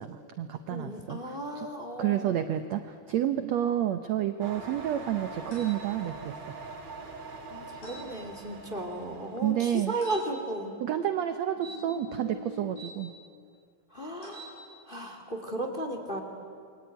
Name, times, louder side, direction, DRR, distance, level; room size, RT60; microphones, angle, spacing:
voice 1, 0.0-1.7 2.0-6.3 9.4-9.9 10.8-13.1, right 11 dB, 75° right, 9 dB, 1.6 m, -30 dB
voice 2, 0.7-2.4 7.5-10.7 13.9-14.5 14.9-16.2, right 1 dB, 15° left, 3 dB, 2.1 m, -35 dB
sound 1, 4.4-9.7, right 3 dB, 50° right, 3.4 m, -43 dB
sound 2, 5.5-5.8 7.8-8.1 10.0-10.2 11.6-12.9 14.2-14.5, equal, 70° left, 8.6 m, -43 dB
28.5 x 22.5 x 9.2 m, 2.3 s
omnidirectional pair, 4.2 m